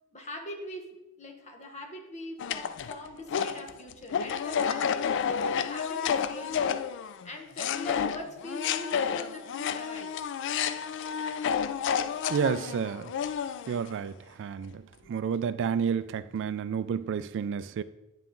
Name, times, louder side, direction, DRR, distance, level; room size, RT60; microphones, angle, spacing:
voice 1, 0.1-0.9 1.2-6.8 7.2-10.2 15.0-15.1, left 1 dB, 30° left, 1.1 m, -42 dB
sound 1, 2.4-7.3 7.6-13.9, left 7 dB, 60° left, 0.4 m, -30 dB
voice 2, 12.3-13.1 13.7-14.8 15.1-17.8, right 7 dB, 60° right, 0.3 m, -30 dB
9.2 x 5.7 x 3.8 m
head